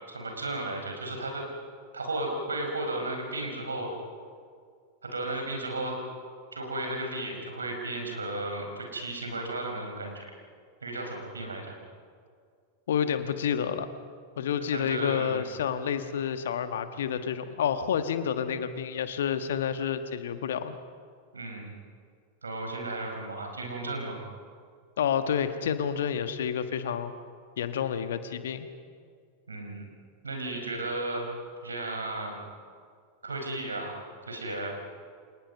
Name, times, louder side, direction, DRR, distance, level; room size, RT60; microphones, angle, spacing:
voice 1, 0.1-1.5 1.9-3.9 5.0-6.0 6.5-10.3 10.8-11.7 14.6-15.4 21.3-21.7 22.4-24.2 29.5-29.8 30.2-31.3 31.6-32.4 33.2-34.0 34.3-34.8, right 2 dB, 75° right, 2 dB, 4.8 m, -34 dB
voice 2, 12.9-13.9 14.4-20.8 25.0-27.1 27.6-28.7, left 8 dB, 60° left, 10 dB, 1.4 m, -29 dB
29.5 x 25.5 x 5.5 m, 2.1 s
figure-of-eight pair, 90°, 0 cm